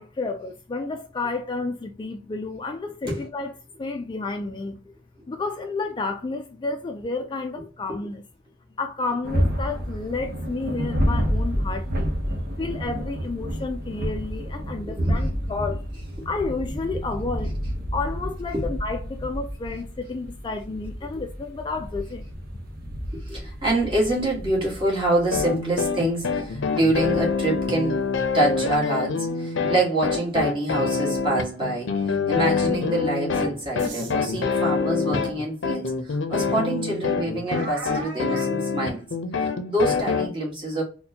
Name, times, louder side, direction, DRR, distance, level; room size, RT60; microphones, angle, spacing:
voice 1, 0.0-3.5 3.8-4.8 5.3-8.2 8.8-12.1 12.6-15.8 16.3-17.6 17.9-22.3, left 3 dB, 25° left, 0.3 m, -31 dB
sound 1, 9.2-28.8, equal, 55° right, 0.9 m, -30 dB
voice 2, 14.8-15.1 16.2-16.3 18.5-18.7 23.1-28.0 28.3-39.0 39.4-40.8, right 1 dB, 25° right, 1.6 m, -26 dB
sound 2, 25.3-40.3, left 4 dB, 75° left, 0.6 m, -25 dB
sound 3, 33.8-34.1 35.3-35.4 35.9-36.0 37.4-38.6, right 1 dB, 80° right, 0.9 m, -36 dB
4.1 x 2.2 x 2.7 m
head